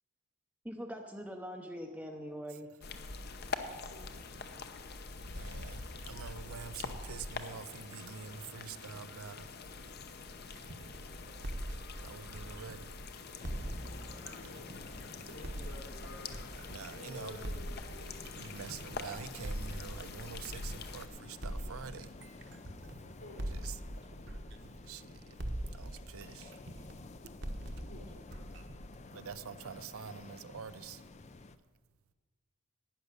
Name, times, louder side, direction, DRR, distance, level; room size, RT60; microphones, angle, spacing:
voice 1, 0.6-2.7, equal, 5° right, 0.6 m, -42 dB
sound 1, 2.8-21.1, left 4 dB, 45° left, 0.8 m, -45 dB
voice 2, 3.7-4.1 14.3-14.7 15.1-16.4 16.9-18.5 23.0-23.4 27.6-28.0 30.5-30.6, left 1 dB, 80° left, 3.5 m, -52 dB
voice 3, 5.3-9.5 12.0-12.9 16.6-17.5 18.3-22.2 23.5-23.8 24.8-25.4 25.7-26.5 29.1-31.0, right 6 dB, 85° right, 0.6 m, -46 dB
sound 2, 10.6-13.0 13.4-17.0 17.4-21.0 21.4-25.1 25.4-29.5, right 1 dB, 55° right, 1.1 m, -43 dB
sound 3, 13.4-31.6, left 3 dB, 30° left, 0.4 m, -52 dB
11.5 x 9.4 x 6.6 m
head